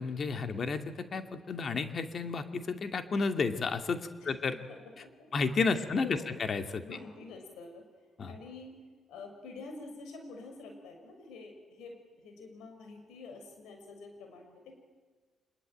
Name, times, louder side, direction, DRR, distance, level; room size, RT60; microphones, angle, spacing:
voice 1, 0.0-4.6 5.3-6.8 8.2-8.3, left 4 dB, 45° left, 8 dB, 2.4 m, -32 dB
voice 2, 4.2-5.3 5.7-6.4 6.8-7.8 8.3-8.8 9.1-14.8, left 3 dB, 85° left, 4 dB, 6.2 m, -48 dB
25.5 x 21.5 x 9.2 m, 1.4 s
cardioid pair, 90°, 0 cm